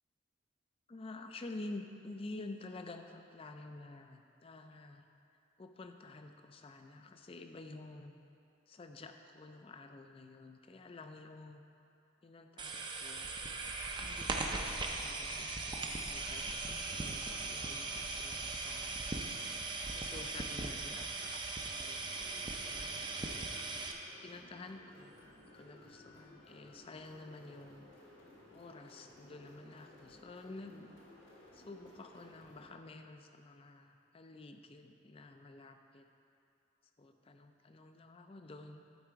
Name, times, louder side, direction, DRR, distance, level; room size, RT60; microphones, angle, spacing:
voice 1, 0.9-5.1 5.6-8.1 8.7-11.6 12.2-13.3 14.0-19.0 19.9-23.1 24.2-25.1 25.5-27.9 28.5-30.9 31.5-36.1 37.0-38.8, left 2 dB, 30° left, 6 dB, 0.4 m, -50 dB
sound 1, 12.6-23.9, right 3 dB, 25° right, 0.5 m, -39 dB
sound 2, 22.0-32.7, left 1 dB, 75° left, 1.5 m, -58 dB
11.5 x 4.3 x 4.6 m, 2.7 s
head